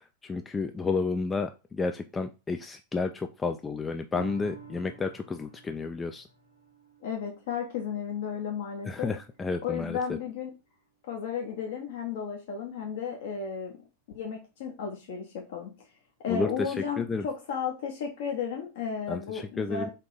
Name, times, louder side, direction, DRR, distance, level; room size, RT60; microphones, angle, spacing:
voice 1, 0.0-6.3 8.9-10.2 16.3-17.3 19.1-19.9, left 4 dB, 15° left, 7 dB, 0.3 m, -31 dB
sound 1, 4.1-10.8 11.2-11.3, right 5 dB, 85° right, 0.8 m, -51 dB
voice 2, 7.0-9.1 9.6-10.5 11.1-13.7 14.1-15.7 16.2-19.9, left 7 dB, 55° left, 1 dB, 0.8 m, -33 dB
3.7 x 2.7 x 3.8 m, 0.29 s
figure-of-eight pair, 90°, 0 cm